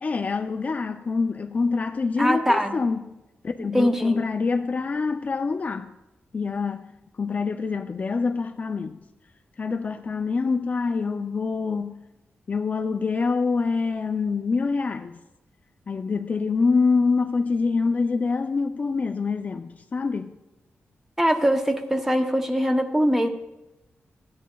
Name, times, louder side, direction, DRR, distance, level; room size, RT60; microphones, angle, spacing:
voice 1, 0.0-3.1 3.4-5.9 6.3-6.9 7.2-9.0 9.6-12.0 12.5-15.2 15.9-20.3, left 4 dB, 35° left, 0.4 m, -25 dB
voice 2, 2.2-2.8 3.7-4.2 21.2-23.3, equal, 10° right, 0.7 m, -22 dB
14.0 x 9.2 x 2.3 m
wide cardioid pair, 160°, 4 cm